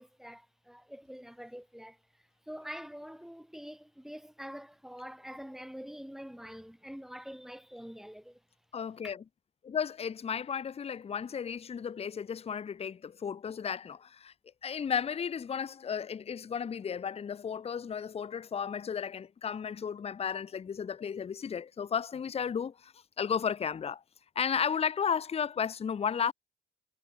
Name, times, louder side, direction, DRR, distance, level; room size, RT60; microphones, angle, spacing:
voice 1, 0.0-2.0 2.5-8.4 9.0-9.1, equal, ahead, 2.9 m, -45 dB
voice 2, 8.7-9.2 9.6-14.3 14.6-24.0 24.4-26.3, left 7 dB, 30° left, 0.6 m, -34 dB
cardioid pair, 90°, 20 cm